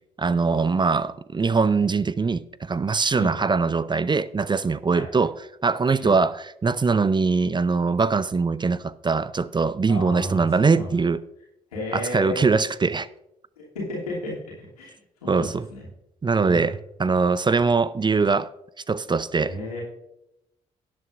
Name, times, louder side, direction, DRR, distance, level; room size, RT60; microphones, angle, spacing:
voice 1, 0.2-5.4 5.6-11.2 11.9-13.1 15.3-15.6 16.2-18.5 18.9-19.6, right 4 dB, 25° right, 0.5 m, -22 dB
voice 2, 9.9-11.0 11.7-12.5 13.6-14.3 14.8-14.9 15.2-15.8 16.4-16.7 19.4-19.8, left 1 dB, 90° left, 2.8 m, -32 dB
17.0 x 7.9 x 2.5 m
hypercardioid pair, 40°, 19 cm